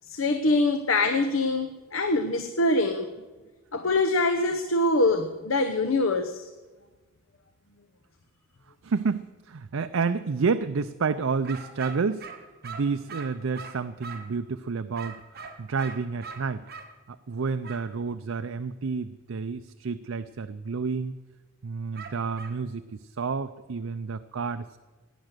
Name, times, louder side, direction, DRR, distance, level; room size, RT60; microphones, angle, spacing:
voice 1, 0.1-3.1 3.7-6.5, left 2 dB, 80° left, 8 dB, 0.9 m, -24 dB
voice 2, 8.8-12.3 12.6-16.6 17.1-21.1 21.6-24.8, right 5 dB, 80° right, 10 dB, 0.5 m, -30 dB
sound 1, 11.4-14.4 14.9-16.9 17.6-17.9 21.9-22.6, right 5 dB, 50° right, 1.6 m, -42 dB
17.0 x 10.0 x 6.7 m, 1.3 s
head